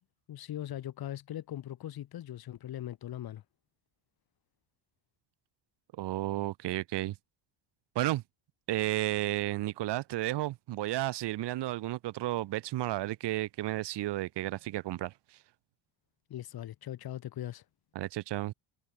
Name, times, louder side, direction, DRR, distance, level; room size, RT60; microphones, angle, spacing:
voice 1, 0.3-3.4 16.3-17.6, left 12 dB, 55° left, 2.8 m, -40 dB
voice 2, 6.0-7.2 8.0-8.2 8.7-15.4 18.0-18.5, right 16 dB, 65° right, 2.0 m, -32 dB
cardioid pair, 115°, 44 cm